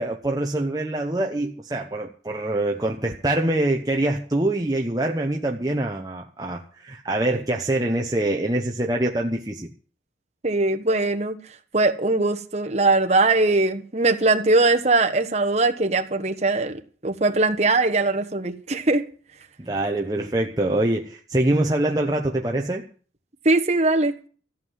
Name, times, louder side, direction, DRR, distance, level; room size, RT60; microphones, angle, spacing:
voice 1, 0.0-9.7 19.6-22.8, right 1 dB, 20° right, 0.9 m, -24 dB
voice 2, 10.4-11.4 11.7-19.0 23.4-24.1, right 3 dB, 35° right, 1.3 m, -21 dB
14.5 x 7.5 x 9.5 m
head